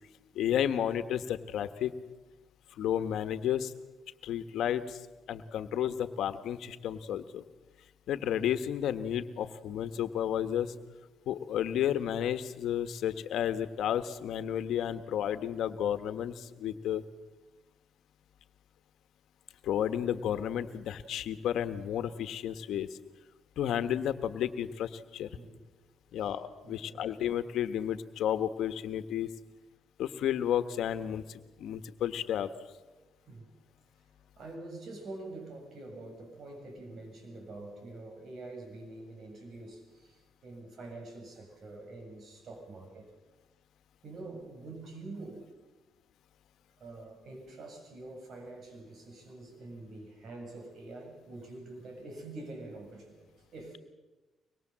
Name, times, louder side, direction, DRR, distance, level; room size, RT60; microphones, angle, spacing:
voice 1, 0.3-1.9 2.8-3.7 4.2-5.0 5.3-7.4 8.1-10.7 11.3-17.0 19.6-22.9 23.6-25.4 26.1-29.3 30.0-32.5, left 10 dB, 75° left, 10 dB, 1.4 m, -32 dB
voice 2, 26.6-27.0 32.9-33.5 34.4-43.1 44.0-45.5 46.8-53.8, right 2 dB, 60° right, 2 dB, 7.7 m, -46 dB
24.0 x 21.5 x 7.6 m, 1.2 s
cardioid pair, 90°, 0 cm